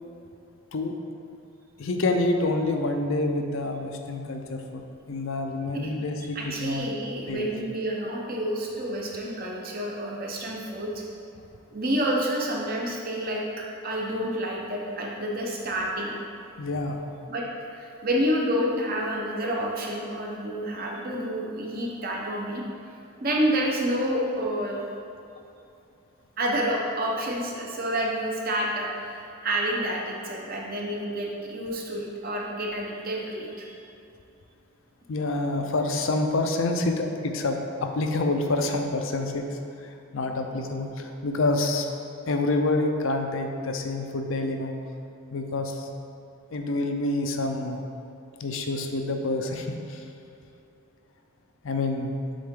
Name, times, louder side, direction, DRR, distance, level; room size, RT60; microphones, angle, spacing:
voice 1, 1.8-6.9 7.3-7.4 16.6-17.0 35.1-41.9 42.3-44.7 45.3-45.9 46.5-47.8 48.4-50.0 51.6-52.2, left 2 dB, 60° left, 5 dB, 0.5 m, -27 dB
voice 2, 6.3-11.0 11.7-13.4 13.8-16.1 17.3-17.4 17.7-22.6 23.2-24.8 26.4-33.7, right 1 dB, 40° right, -2 dB, 0.8 m, -29 dB
7.5 x 3.8 x 3.7 m, 2.7 s
head